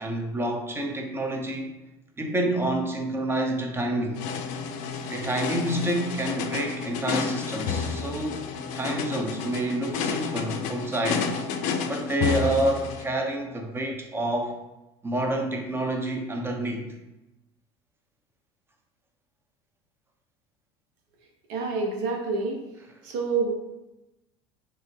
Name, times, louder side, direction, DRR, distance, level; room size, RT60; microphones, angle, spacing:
voice 1, 0.0-1.7 2.2-4.2 5.1-8.4 8.7-11.3 11.8-14.6 15.0-16.9, right 1 dB, 15° right, 3 dB, 0.6 m, -28 dB
sound 1, 4.2-13.1, left 6 dB, 60° left, 0.4 m, -30 dB
voice 2, 21.5-22.6 23.0-23.5, right 4 dB, 65° right, 1 dB, 0.7 m, -27 dB
3.4 x 2.0 x 3.2 m, 0.97 s
hypercardioid pair, 75°, 14 cm